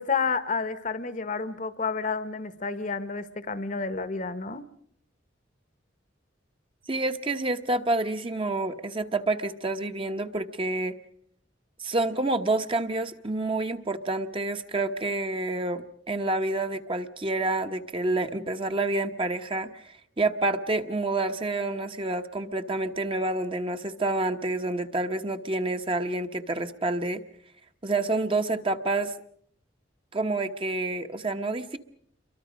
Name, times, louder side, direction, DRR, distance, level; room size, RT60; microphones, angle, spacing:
voice 1, 0.0-4.6, left 5 dB, 45° left, 14 dB, 1.1 m, -30 dB
voice 2, 6.9-10.9 11.8-27.2 27.8-29.1 30.1-31.8, right 2 dB, 30° right, 7 dB, 1.0 m, -28 dB
29.0 x 23.5 x 5.1 m, 0.64 s
head